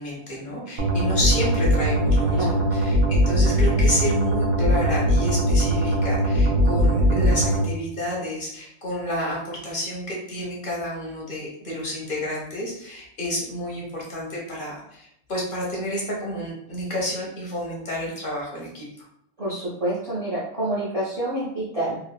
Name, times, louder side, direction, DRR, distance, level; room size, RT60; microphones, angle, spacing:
voice 1, 0.0-19.0, left 1 dB, 50° left, -3 dB, 0.7 m, -30 dB
sound 1, 0.8-7.6, equal, 80° right, 1.0 m, -20 dB
voice 2, 2.3-2.6 19.4-22.0, right 1 dB, 30° right, -7 dB, 0.7 m, -27 dB
2.9 x 2.3 x 2.3 m, 0.74 s
omnidirectional pair, 1.4 m